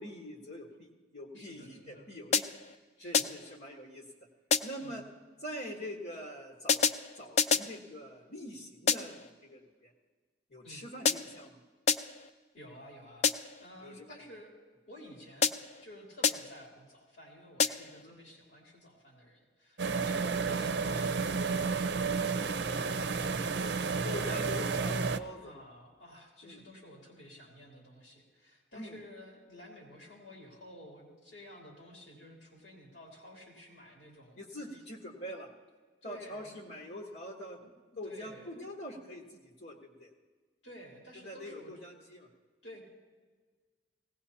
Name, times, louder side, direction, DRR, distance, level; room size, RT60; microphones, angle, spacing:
voice 1, 0.0-2.5 3.0-4.0 4.6-5.0 5.4-9.9 10.5-11.6 13.8-14.2 18.0-18.2 20.3-20.4 24.0-25.5 26.4-26.7 28.7-28.9 34.4-35.5 36.0-37.6 38.0-40.1 41.2-42.3, equal, 65° left, -1 dB, 1.5 m, -44 dB
voice 2, 1.3-2.1 3.0-3.4 4.8-5.0 10.6-10.8 12.5-14.5 14.9-15.5 15.8-24.7 25.4-34.4 34.7-34.8 36.0-36.7 37.6-37.7 38.0-38.5 40.6-41.7 42.6-42.8, equal, 85° left, -3 dB, 3.2 m, -52 dB
sound 1, 2.3-2.8 3.1-3.6 4.5-4.9 6.7-7.8 8.9-9.3 11.1-11.5 11.9-12.3 13.2-13.7 15.4-15.8 16.2-16.7 17.6-18.0, left 6 dB, 35° left, 0.4 m, -29 dB
sound 2, 19.8-25.2, right 4 dB, 65° right, 0.5 m, -31 dB
19.0 x 17.5 x 2.9 m, 1.4 s
head